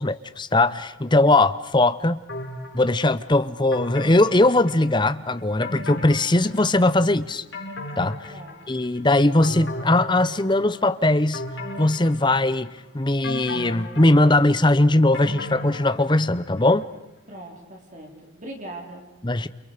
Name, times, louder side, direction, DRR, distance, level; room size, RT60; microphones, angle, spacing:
voice 1, 0.0-2.2 2.7-7.4 8.0-8.3 8.7-11.4 11.8-16.9 19.2-19.5, left 2 dB, 20° left, 13 dB, 0.9 m, -20 dB
sound 1, 2.3-3.1 3.7-5.2 5.6-6.9 7.3-9.0 9.4-10.8 11.3-12.8 13.2-16.5 16.8-16.9, left 1 dB, 60° left, 5.5 m, -36 dB
voice 2, 17.3-19.1, right 1 dB, 35° right, 1 dB, 4.7 m, -40 dB
29.5 x 29.0 x 5.1 m, 0.97 s
head